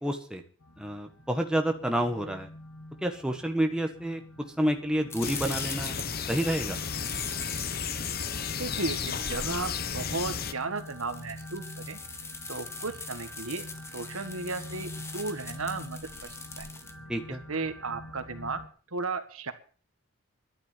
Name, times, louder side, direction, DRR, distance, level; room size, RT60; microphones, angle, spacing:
voice 1, 0.0-0.4 0.8-2.5 3.0-4.2 4.6-6.0 6.3-6.8 17.1-17.4, right 1 dB, 5° right, 4 dB, 1.4 m, -29 dB
sound 1, 0.6-18.7, left 1 dB, 75° left, 2.5 m, -46 dB
sound 2, 5.1-16.9, left 3 dB, 10° left, 1.2 m, -43 dB
sound 3, 5.2-10.5, left 7 dB, 45° left, 0.9 m, -33 dB
voice 2, 8.6-12.0 12.5-13.6 13.9-16.7 17.5-18.6 18.9-19.5, right 3 dB, 80° right, 9 dB, 1.7 m, -35 dB
12.0 x 10.5 x 7.3 m, 0.41 s
head